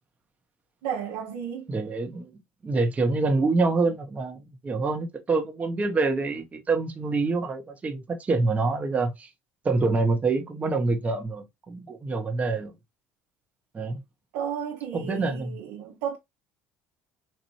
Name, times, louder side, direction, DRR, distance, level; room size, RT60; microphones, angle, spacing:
voice 1, 0.8-1.7 14.3-16.2, right 8 dB, 80° right, 1.0 m, -33 dB
voice 2, 1.7-2.3 2.6-9.3 9.6-12.7 13.7-14.0 14.9-15.6, right 3 dB, 25° right, 0.9 m, -26 dB
4.2 x 2.5 x 3.0 m
supercardioid pair, 90°, 6 cm